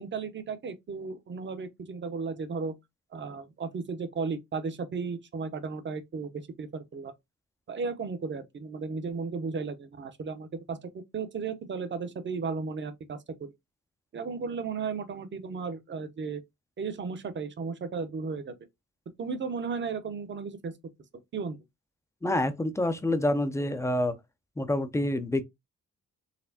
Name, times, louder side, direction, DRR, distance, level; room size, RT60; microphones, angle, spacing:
voice 1, 0.0-2.7 3.1-7.1 7.7-13.5 14.1-16.4 16.8-18.5 19.2-20.7 21.3-21.6, right 5 dB, 35° right, 0.7 m, -35 dB
voice 2, 22.2-24.2 24.6-25.4, left 1 dB, 10° left, 0.4 m, -27 dB
4.1 x 3.3 x 2.7 m
wide cardioid pair, 150°, 31 cm